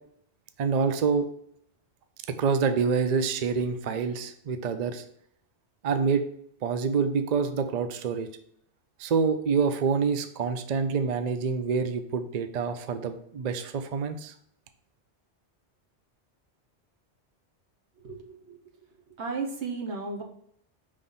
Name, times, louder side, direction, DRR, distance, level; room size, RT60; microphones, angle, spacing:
voice 1, 0.6-1.3 2.3-5.0 5.8-6.2 6.6-8.3 9.0-14.3, right 5 dB, 55° right, 8 dB, 0.5 m, -27 dB
voice 2, 18.0-18.8 19.2-20.2, right 4 dB, 75° right, 1 dB, 1.3 m, -35 dB
5.5 x 3.2 x 5.5 m, 0.68 s
omnidirectional pair, 1.2 m